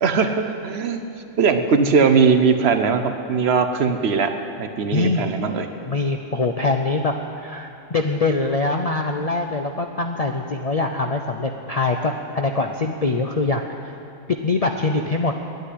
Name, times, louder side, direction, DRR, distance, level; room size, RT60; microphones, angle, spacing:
voice 1, 0.0-1.1 1.4-4.3 4.6-5.7, right 5 dB, 60° right, 7 dB, 0.9 m, -19 dB
voice 2, 4.9-5.3 5.9-13.9 14.3-15.3, left 3 dB, 50° left, 4 dB, 0.4 m, -23 dB
9.7 x 9.0 x 9.9 m, 2.8 s
omnidirectional pair, 1.3 m